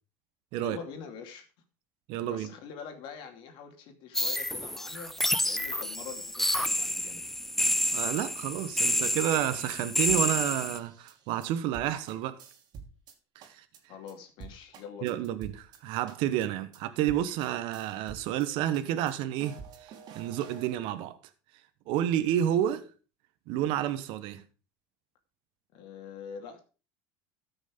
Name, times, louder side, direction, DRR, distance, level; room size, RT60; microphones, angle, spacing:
voice 1, 0.6-1.5 2.2-7.2 13.9-15.1 25.7-26.6, left 6 dB, 60° left, 2.6 m, -44 dB
voice 2, 2.1-2.5 7.9-12.4 13.3-13.6 15.0-21.2 21.9-22.9 23.5-24.4, right 11 dB, 65° right, 1.1 m, -30 dB
sound 1, 4.1-10.8, left 1 dB, 5° left, 0.6 m, -29 dB
sound 2, 10.1-13.1 13.4-13.8 14.1-14.2 14.4-15.8 16.1-16.5 16.7-16.8 17.1-18.5 18.7-20.7, right 6 dB, 50° right, 2.8 m, -48 dB
13.5 x 6.2 x 5.1 m
supercardioid pair, 130°, 9 cm